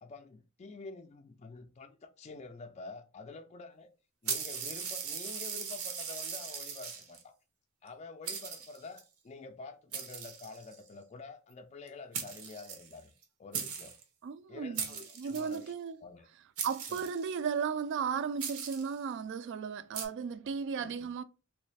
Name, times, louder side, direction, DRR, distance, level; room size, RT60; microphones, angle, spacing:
voice 1, 0.0-3.9 4.2-7.3 7.8-13.1 13.4-14.0 14.5-15.7 16.0-16.3 16.9-17.0 20.8-21.1, left 3 dB, 30° left, 0.3 m, -48 dB
sound 1, 4.3-7.2 7.9-8.0 8.3-9.0 9.9-10.9 11.9-12.0 12.1-13.2 13.5-14.0 14.8-15.6 16.6-17.5 18.4-19.0 19.9-20.1, right 7 dB, 75° right, 0.8 m, -39 dB
voice 2, 14.2-16.0 16.6-21.2, right 6 dB, 55° right, 0.3 m, -35 dB
3.2 x 3.0 x 3.3 m
head